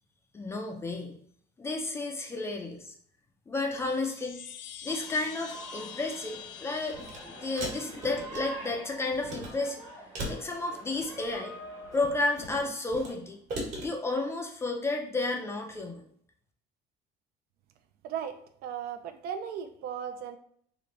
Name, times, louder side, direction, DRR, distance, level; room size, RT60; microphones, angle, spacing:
voice 1, 0.3-1.2 1.6-2.9 3.5-4.4 4.8-9.8 10.3-11.5 11.9-13.4 13.8-16.0, left 2 dB, 15° left, 2 dB, 0.4 m, -32 dB
sound 1, 3.8-8.8, left 10 dB, 85° left, 0.4 m, -47 dB
sound 2, 4.9-13.1, right 1 dB, 10° right, 0.8 m, -46 dB
sound 3, 6.9-7.2 7.6-8.7 9.1-9.5 10.1-11.3 11.8-13.1 13.5-13.9, right 1 dB, 40° right, 1.1 m, -38 dB
voice 2, 18.0-20.4, right 8 dB, 60° right, 8 dB, 0.4 m, -37 dB
3.3 x 2.5 x 3.7 m, 0.64 s
cardioid pair, 180°, 18 cm